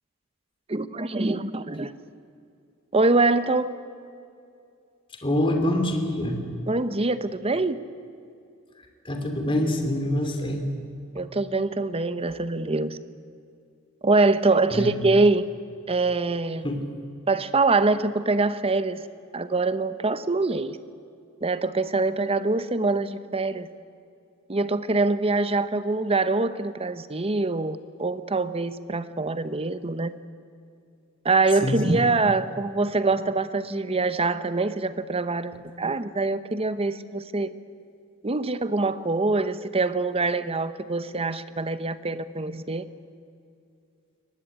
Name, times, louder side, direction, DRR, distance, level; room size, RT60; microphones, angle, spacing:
voice 1, 0.7-1.9 2.9-3.7 6.7-7.8 11.1-13.0 14.0-15.5 15.9-16.7 17.3-19.1 19.3-20.8 21.4-23.7 24.5-30.1 31.2-37.5 38.2-42.8, right 3 dB, 25° right, 13 dB, 0.9 m, -24 dB
voice 2, 5.2-6.4 9.0-10.7 14.7-14.9 16.6-16.9 31.6-32.0, left 1 dB, 25° left, 4 dB, 2.9 m, -25 dB
22.5 x 18.5 x 9.9 m, 2.5 s
head